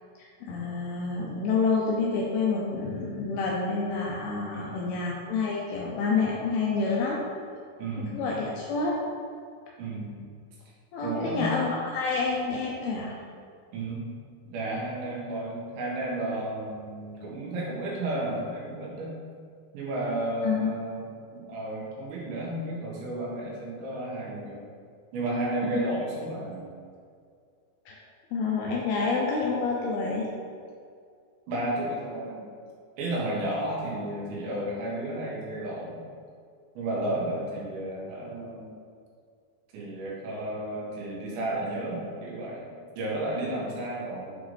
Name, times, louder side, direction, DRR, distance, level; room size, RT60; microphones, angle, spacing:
voice 1, 0.2-7.2 8.0-9.0 10.9-13.2 20.4-20.7 25.7-25.8 27.9-28.0 28.3-30.3 33.6-33.8, left 4 dB, 80° left, -3 dB, 2.3 m, -28 dB
voice 2, 4.5-5.0 7.8-8.2 9.8-10.2 11.0-11.5 13.7-14.1 14.5-19.1 19.7-21.1 21.3-24.6 25.1-26.7 31.5-32.5 33.0-36.0 36.8-38.7 39.7-44.4, right 1 dB, 85° right, -5 dB, 3.6 m, -32 dB
7.9 x 3.9 x 3.2 m, 2.2 s
omnidirectional pair, 5.0 m